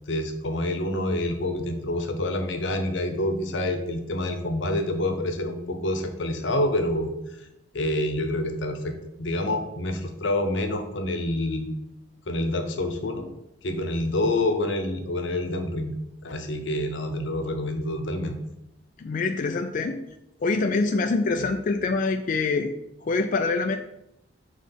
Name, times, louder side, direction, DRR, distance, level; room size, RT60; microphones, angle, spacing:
voice 1, 0.1-7.1 7.4-7.5 7.7-11.7 12.3-13.3 13.6-15.9 16.2-18.3 21.4-21.5, left 1 dB, 85° left, 6 dB, 0.9 m, -27 dB
voice 2, 19.0-20.0 20.4-22.7 23.0-23.8, left 3 dB, 45° left, 5 dB, 0.4 m, -25 dB
5.9 x 3.2 x 5.3 m, 0.83 s
head